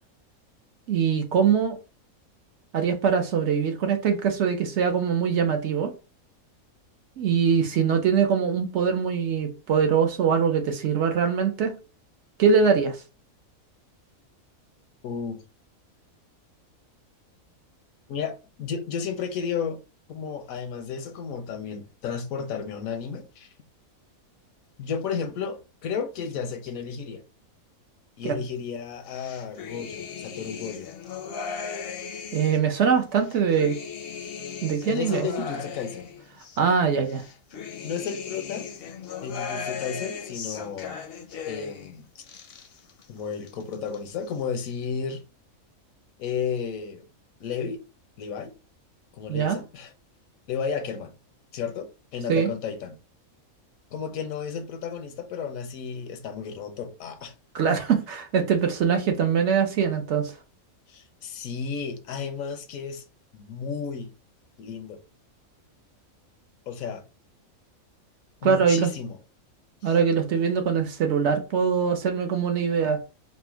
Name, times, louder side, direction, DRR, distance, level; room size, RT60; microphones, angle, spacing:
voice 1, 0.9-1.8 2.7-5.9 7.2-11.7 12.4-13.0 28.2-28.4 32.3-33.8 34.6-35.3 36.6-37.2 49.3-49.6 52.3-52.5 57.5-60.4 68.4-68.9 69.8-73.0, right 6 dB, 60° right, 0.9 m, -23 dB
voice 2, 15.0-15.4 18.1-19.8 20.1-23.5 24.8-27.2 28.2-30.9 34.9-36.1 37.8-38.7 39.2-41.0 41.5-42.0 43.1-45.2 46.2-47.0 47.4-47.8 48.2-48.5 49.1-49.9 50.5-51.1 51.5-53.0 53.9-57.3 60.9-63.0 63.3-64.1 64.6-65.0 66.7-67.0 68.4-69.2 69.8-69.9, left 6 dB, 80° left, 1.1 m, -33 dB
sound 1, 29.1-32.7 33.2-36.6 37.1-41.9 42.2-43.1 43.3-44.1, left 6 dB, 55° left, 0.7 m, -37 dB
4.2 x 2.2 x 4.4 m
omnidirectional pair, 1.5 m